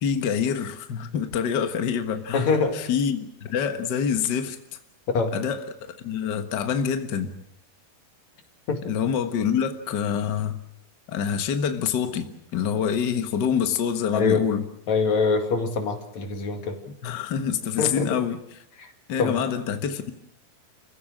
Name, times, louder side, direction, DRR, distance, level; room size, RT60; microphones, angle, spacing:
voice 1, 0.0-2.5 2.7-4.6 5.3-7.4 8.9-10.6 11.1-14.6 17.0-18.4 19.1-20.1, left 7 dB, 75° left, 7 dB, 0.9 m, -26 dB
voice 2, 2.3-2.8 5.1-5.3 8.7-8.9 14.1-14.5 14.9-16.8 17.8-18.2 18.8-18.9 19.2-19.4, left 4 dB, 50° left, 5 dB, 3.3 m, -24 dB
29.5 x 16.0 x 7.5 m, 0.79 s
omnidirectional pair, 4.4 m